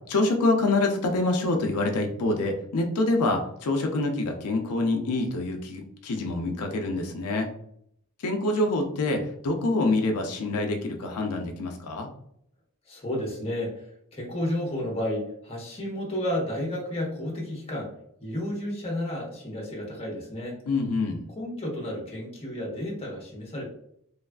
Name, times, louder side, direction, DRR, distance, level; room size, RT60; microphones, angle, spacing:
voice 1, 0.1-7.5 8.2-12.1 20.7-21.2, left 2 dB, 90° left, 3 dB, 0.5 m, -26 dB
voice 2, 12.9-17.9 18.2-20.6 21.3-23.6, left 1 dB, 25° left, -1 dB, 0.8 m, -32 dB
3.2 x 2.3 x 2.2 m, 0.69 s
head